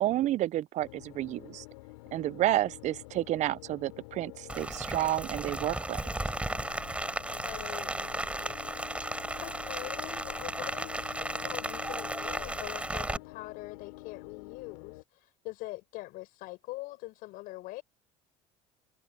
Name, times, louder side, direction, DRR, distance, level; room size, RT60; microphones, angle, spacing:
voice 1, 0.0-1.6 2.1-6.0, right 14 dB, 50° right, 0.6 m, -30 dB
sound 1, 0.8-15.0, left 21 dB, 85° left, 3.5 m, -48 dB
Rain, 4.5-13.2, right 1 dB, 10° right, 5.2 m, -35 dB
voice 2, 7.4-7.9 9.4-17.8, left 20 dB, 70° left, 7.2 m, -43 dB
supercardioid pair, 90°, 16 cm